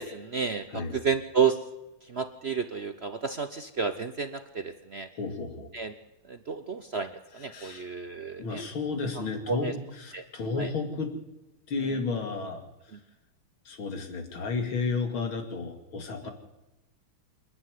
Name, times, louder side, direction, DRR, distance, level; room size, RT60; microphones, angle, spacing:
voice 1, 0.0-1.6 2.1-5.1 5.7-5.9 6.3-8.6 9.5-9.7 10.1-10.2 10.6-10.7 16.2-16.3, right 6 dB, 55° right, 9 dB, 0.7 m, -31 dB
voice 2, 5.1-5.7 7.4-7.9 8.4-11.1 11.7-12.6 13.6-16.3, left 4 dB, 70° left, 5 dB, 3.2 m, -32 dB
28.5 x 10.0 x 9.4 m, 1.1 s
omnidirectional pair, 2.4 m